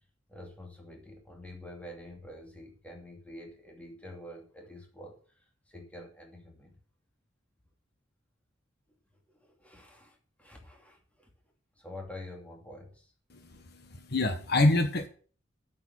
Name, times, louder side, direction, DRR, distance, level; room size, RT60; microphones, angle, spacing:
voice 1, 0.3-6.8 9.3-11.3 11.8-13.1, left 1 dB, 5° left, 1 dB, 2.6 m, -47 dB
voice 2, 13.3-15.1, left 2 dB, 55° left, 7 dB, 1.4 m, -27 dB
8.6 x 7.1 x 8.6 m, 0.43 s
head